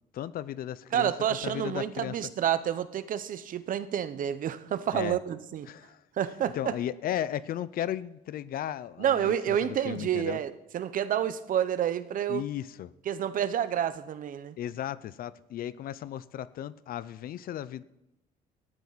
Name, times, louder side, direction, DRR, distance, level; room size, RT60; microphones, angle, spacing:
voice 1, 0.1-1.1 1.4-2.1 4.9-5.2 5.7-6.0 6.5-9.3 9.6-10.4 12.3-12.9 14.6-17.8, left 11 dB, 60° left, 17 dB, 0.6 m, -35 dB
voice 2, 0.9-5.7 6.2-6.7 9.0-12.4 13.1-14.6, right 10 dB, 55° right, 13 dB, 0.9 m, -29 dB
18.0 x 14.0 x 4.1 m, 0.89 s
cardioid pair, 110°, 17 cm